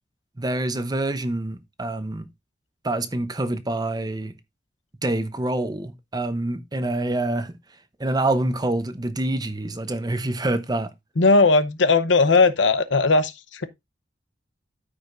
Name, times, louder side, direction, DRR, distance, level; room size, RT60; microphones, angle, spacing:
voice 1, 0.4-2.3 2.8-4.3 5.0-7.5 8.0-10.9, right 2 dB, 20° right, 0.7 m, -26 dB
voice 2, 11.2-13.6, left 3 dB, 80° left, 0.8 m, -18 dB
13.5 x 5.0 x 2.5 m
head